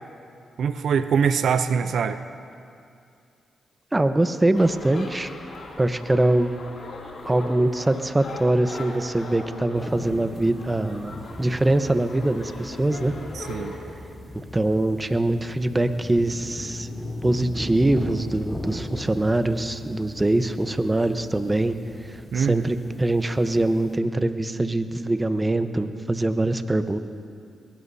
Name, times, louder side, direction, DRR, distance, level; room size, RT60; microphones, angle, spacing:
voice 1, 0.6-2.2 13.3-13.8 22.3-22.7, right 6 dB, 70° right, 11 dB, 0.6 m, -23 dB
voice 2, 3.9-5.3 5.8-6.5 7.3-11.1 11.4-13.1 14.5-16.9 17.2-21.8 22.0-27.0, right 2 dB, 20° right, 10 dB, 1.0 m, -23 dB
sound 1, 4.5-13.8, left 2 dB, 65° left, 2.7 m, -40 dB
sound 2, 9.7-24.0, left 1 dB, 10° left, 3.4 m, -38 dB
22.0 x 19.0 x 2.8 m, 2.4 s
supercardioid pair, 50°, 0 cm